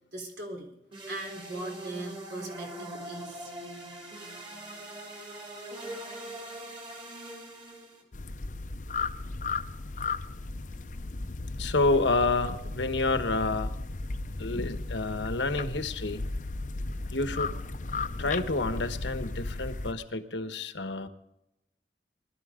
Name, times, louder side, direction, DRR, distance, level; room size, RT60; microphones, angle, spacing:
voice 1, 0.1-0.7 1.1-3.5, right 2 dB, 70° right, 3 dB, 3.9 m, -39 dB
sound 1, 0.9-8.0, right 1 dB, 30° right, 3.0 m, -42 dB
sound 2, 8.1-19.9, left 3 dB, 45° left, 0.7 m, -35 dB
voice 2, 11.6-13.7 14.4-16.2 17.1-17.5 18.2-21.1, left 3 dB, 85° left, 9 dB, 1.2 m, -29 dB
21.0 x 12.5 x 3.8 m, 0.85 s
head